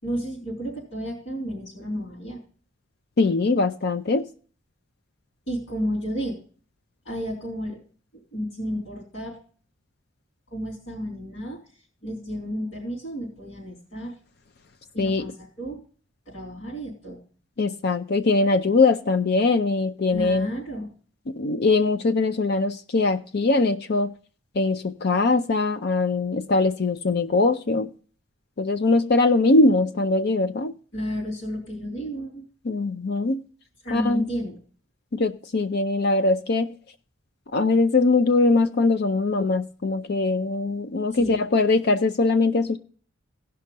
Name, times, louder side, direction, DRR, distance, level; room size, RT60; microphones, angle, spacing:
voice 1, 0.0-2.4 5.5-6.4 7.0-7.8 8.3-9.4 10.5-11.6 12.0-14.1 14.9-15.8 16.3-17.2 20.1-20.9 30.9-32.4 33.8-34.6 41.1-41.3, equal, 70° left, 4.2 m, -32 dB
voice 2, 3.2-4.3 15.0-15.3 17.6-20.5 21.3-24.1 24.6-27.9 28.6-30.7 32.6-33.4 33.9-34.3 35.1-36.7 37.5-42.8, left 3 dB, 55° left, 0.5 m, -21 dB
16.5 x 5.6 x 5.2 m
head